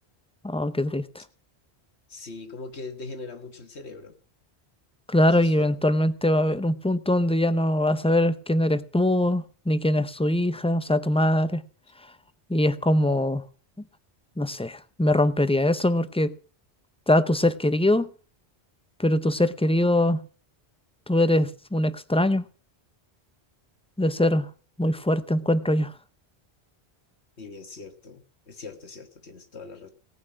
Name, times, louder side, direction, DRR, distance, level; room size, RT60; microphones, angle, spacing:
voice 1, 0.4-1.0 5.1-11.6 12.5-13.4 14.4-16.3 17.1-18.1 19.0-20.2 21.1-22.4 24.0-24.5 24.8-25.9, left 1 dB, 5° left, 0.5 m, -22 dB
voice 2, 2.1-4.1 5.3-5.8 27.4-29.9, left 3 dB, 90° left, 2.0 m, -41 dB
17.5 x 6.1 x 8.7 m
omnidirectional pair, 1.1 m